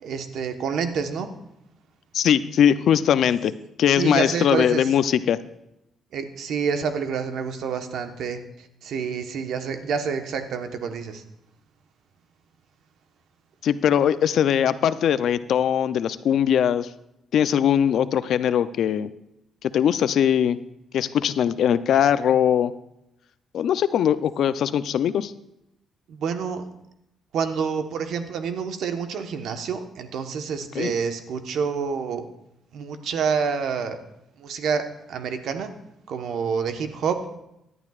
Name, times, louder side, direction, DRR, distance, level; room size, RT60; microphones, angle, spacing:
voice 1, 0.0-1.3 3.9-4.9 6.1-11.2 26.1-26.6 27.3-32.3 32.7-34.0 34.4-35.7 36.1-37.2, right 6 dB, 75° right, 7 dB, 1.1 m, -28 dB
voice 2, 2.1-3.5 3.8-5.4 13.6-16.9 17.3-19.1 19.6-20.6 20.9-22.7 23.5-25.3 30.7-30.9, left 9 dB, 70° left, 14 dB, 0.5 m, -21 dB
17.0 x 11.0 x 2.4 m, 0.85 s
cardioid pair, 90°, 0 cm